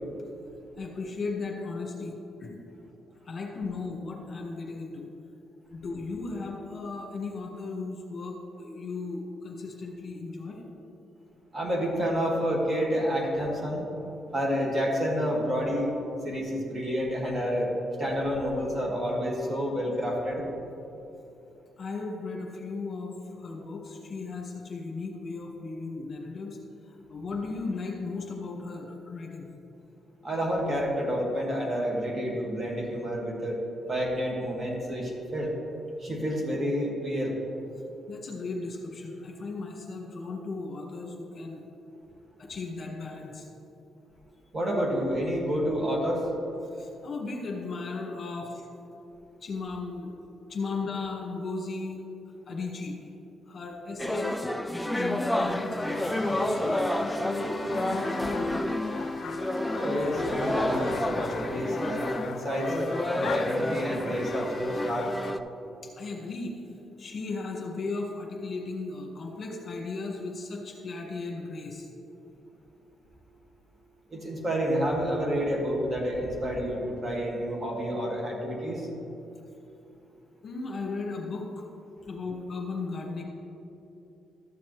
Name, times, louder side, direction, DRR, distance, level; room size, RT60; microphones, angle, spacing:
voice 1, 0.8-2.1 2.4-2.6 3.3-5.1 5.7-10.6 21.8-26.6 26.8-29.5 38.1-41.6 42.4-43.5 46.7-48.7 49.4-50.1 50.5-52.0 52.5-53.0 53.5-54.4 54.8-56.6 56.9-58.7 65.8-66.6 67.0-71.9 80.4-81.6 82.0-83.2, left 3 dB, 45° left, 0 dB, 1.6 m, -36 dB
voice 2, 11.5-13.9 14.3-15.9 16.2-17.7 18.0-20.4 30.2-33.6 33.9-35.5 36.0-37.4 44.5-46.2 59.7-65.1 74.1-78.9, equal, 35° right, -2 dB, 1.9 m, -29 dB
sound 1, 54.0-65.4, left 1 dB, 5° left, 0.4 m, -30 dB
sound 2, 55.4-65.3, left 7 dB, 75° left, 0.4 m, -41 dB
sound 3, 55.9-61.0, equal, 50° right, 1.9 m, -47 dB
13.0 x 7.1 x 3.2 m, 2.8 s
cardioid pair, 90°, 0 cm